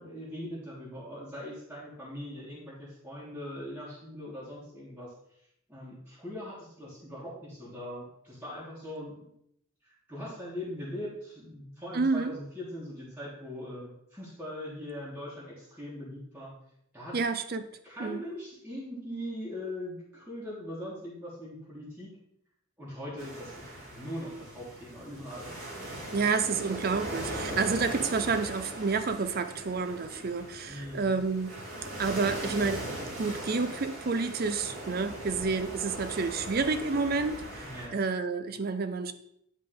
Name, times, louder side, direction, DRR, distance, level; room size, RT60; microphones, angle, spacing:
voice 1, 0.0-5.1 5.7-9.3 9.8-16.5 16.9-17.2 17.8-22.1 22.8-25.5 30.7-31.2 37.6-38.0, left 1 dB, 10° right, -8 dB, 1.6 m, -41 dB
voice 2, 11.9-12.3 17.1-17.6 18.0-18.2 26.1-31.6 32.0-32.9 33.2-39.1, right 4 dB, 45° right, 9 dB, 0.5 m, -29 dB
sound 1, 23.2-37.9, right 1 dB, 90° right, 3.0 m, -40 dB
9.7 x 3.7 x 3.8 m, 0.74 s
head